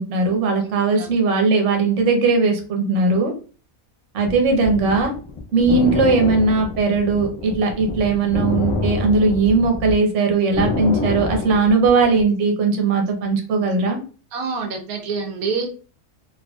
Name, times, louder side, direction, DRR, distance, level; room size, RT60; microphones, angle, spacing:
voice 1, 0.0-3.3 4.1-5.1 5.5-14.0, right 3 dB, 60° right, 3 dB, 1.1 m, -19 dB
sound 1, 4.2-9.9 10.3-12.2, left 4 dB, 40° left, 0.4 m, -26 dB
voice 2, 14.3-15.7, right 4 dB, 80° right, 4 dB, 1.1 m, -26 dB
3.9 x 3.0 x 2.3 m, 0.38 s
omnidirectional pair, 1.5 m